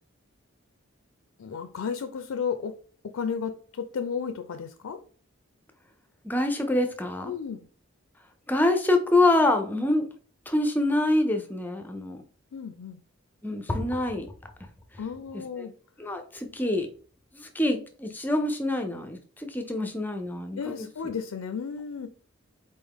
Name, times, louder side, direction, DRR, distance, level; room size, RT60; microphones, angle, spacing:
voice 1, 1.4-2.7 3.1-5.0 7.3-7.7 12.5-13.0 15.0-15.7 20.6-22.1, left 6 dB, 85° left, 8 dB, 0.4 m, -33 dB
voice 2, 6.2-7.3 8.5-10.1 10.5-12.2 13.4-14.3 15.6-15.7 16.0-16.9 17.3-20.9, left 2 dB, 10° left, 5 dB, 0.5 m, -26 dB
4.2 x 3.5 x 3.6 m, 0.43 s
head